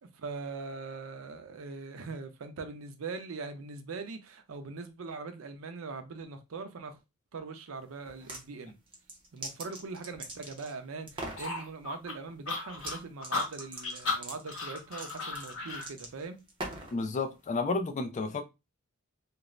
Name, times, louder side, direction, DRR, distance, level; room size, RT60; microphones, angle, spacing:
voice 1, 0.0-7.0 7.3-8.7 9.3-16.4, right 4 dB, 70° right, 0.5 m, -41 dB
sound 1, 8.0-8.4 8.9-10.7 11.1-11.5 12.7-13.0 13.2-17.0, right 2 dB, 25° right, 0.6 m, -41 dB
sound 2, 11.4-15.9, left 3 dB, 70° left, 1.0 m, -35 dB
voice 2, 16.9-18.4, left 3 dB, 35° left, 0.3 m, -31 dB
2.5 x 2.0 x 3.0 m
head